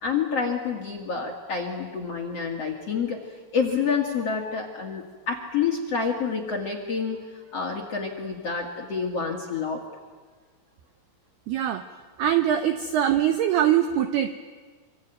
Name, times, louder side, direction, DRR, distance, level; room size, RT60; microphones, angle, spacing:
voice 1, 0.0-7.2 7.5-9.8, left 5 dB, 45° left, 0 dB, 2.1 m, -28 dB
voice 2, 11.5-11.8 12.2-14.4, right 10 dB, 80° right, 8 dB, 2.3 m, -22 dB
25.0 x 25.0 x 9.2 m, 1.5 s
omnidirectional pair, 5.8 m